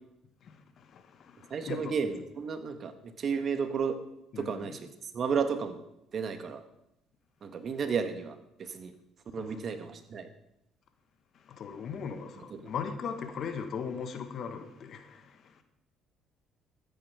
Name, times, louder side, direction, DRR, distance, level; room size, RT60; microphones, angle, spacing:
voice 1, 0.4-2.0 4.3-4.8 9.3-9.6 11.3-15.6, left 6 dB, 60° left, 1.6 m, -39 dB
voice 2, 1.5-4.0 4.4-4.9 5.1-5.8 6.1-6.6 7.4-8.9 9.3-10.3 12.5-12.7, right 6 dB, 50° right, 1.6 m, -33 dB
13.5 x 9.5 x 4.9 m
hypercardioid pair, 65°, 0 cm